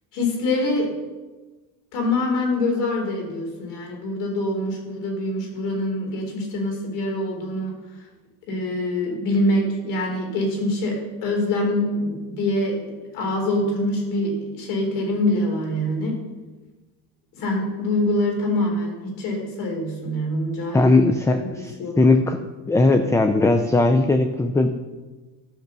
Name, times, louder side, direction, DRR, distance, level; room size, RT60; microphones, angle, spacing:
voice 1, 0.1-0.9 1.9-7.7 8.5-12.8 13.1-16.2 17.3-20.9 21.8-22.0, left 1 dB, 85° left, 2 dB, 3.7 m, -24 dB
voice 2, 20.7-22.4 22.7-24.7, left 2 dB, 10° left, 8 dB, 0.3 m, -18 dB
13.5 x 5.9 x 6.7 m, 1.2 s
cardioid pair, 140°, 40 cm